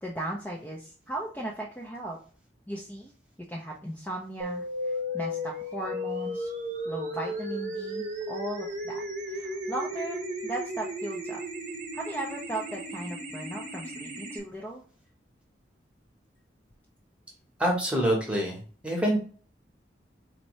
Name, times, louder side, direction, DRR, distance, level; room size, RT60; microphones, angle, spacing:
voice 1, 0.0-2.2 2.7-3.1 3.5-6.5 6.9-11.4 11.9-14.8, right 1 dB, 10° left, -3 dB, 0.5 m, -37 dB
sound 1, 4.4-14.4, equal, 40° right, 0.8 m, -35 dB
voice 2, 17.6-19.2, right 1 dB, 5° right, -1 dB, 1.0 m, -26 dB
4.3 x 2.7 x 3.1 m, 0.42 s
head